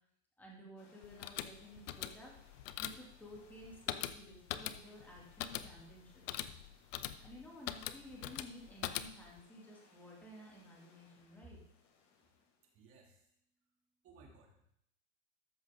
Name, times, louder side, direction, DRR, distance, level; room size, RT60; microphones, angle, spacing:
voice 1, 0.4-2.3 2.8-6.2 7.2-11.6, equal, 5° left, -3 dB, 2.6 m, -54 dB
sound 1, 0.8-12.8, left 5 dB, 45° left, 2.1 m, -67 dB
sound 2, 1.0-9.4, left 12 dB, 80° left, 0.7 m, -43 dB
voice 2, 12.7-13.3 14.0-14.6, right 5 dB, 35° right, 0 dB, 2.7 m, -61 dB
13.5 x 6.3 x 3.8 m, 0.73 s
supercardioid pair, 130°, 37 cm